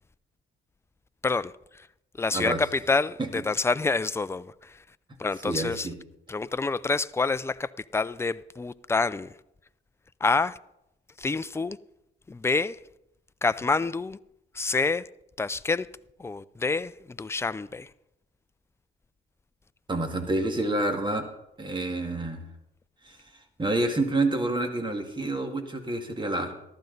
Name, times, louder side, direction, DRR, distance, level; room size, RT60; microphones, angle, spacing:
voice 1, 1.2-1.9 2.2-4.8 5.2-5.9 6.3-9.3 10.2-10.6 11.2-11.8 12.3-12.8 13.4-14.2 14.5-15.1 15.4-15.9 16.2-17.9, left 3 dB, 15° left, 0.4 m, -27 dB
voice 2, 5.4-5.9 19.9-21.2 21.6-22.5 23.0-23.2 23.6-26.5, right 2 dB, 25° right, 2.0 m, -28 dB
14.5 x 12.0 x 4.0 m
cardioid pair, 90°, 20 cm